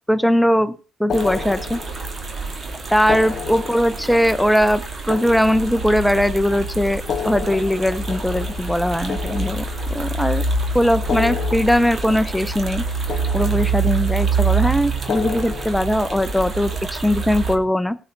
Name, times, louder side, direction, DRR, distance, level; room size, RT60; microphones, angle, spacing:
voice 1, 0.1-0.7 1.0-1.8 2.9-10.4 10.7-12.8 13.3-18.0, equal, ahead, 13 dB, 0.7 m, -20 dB
sound 1, 1.1-2.3 3.0-6.3 7.0-10.3 11.0-12.8 13.1-14.2 15.0-16.8, left 8 dB, 55° left, 1.1 m, -32 dB
sound 2, 1.1-17.6, right 4 dB, 40° right, 2.7 m, -26 dB
18.0 x 8.0 x 4.0 m, 0.36 s
cardioid pair, 90°, 0 cm